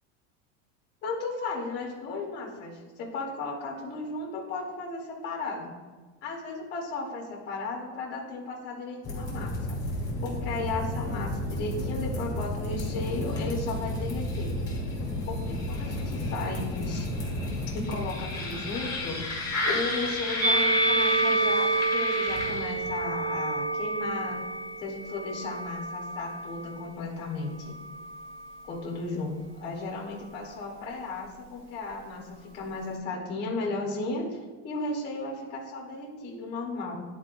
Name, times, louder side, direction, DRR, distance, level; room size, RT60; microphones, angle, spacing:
voice 1, 1.0-5.8 6.2-9.8 10.2-14.5 15.3-17.1 17.7-24.4 24.8-27.7 28.7-37.0, left 3 dB, 25° left, -3 dB, 1.1 m, -35 dB
sound 1, 9.0-22.9, left 1 dB, 10° left, 1.4 m, -32 dB
Musical instrument, 20.4-26.8 27.7-28.7, right 2 dB, 30° right, 0.4 m, -28 dB
10.5 x 4.0 x 2.5 m, 1.4 s
cardioid pair, 165°, 41 cm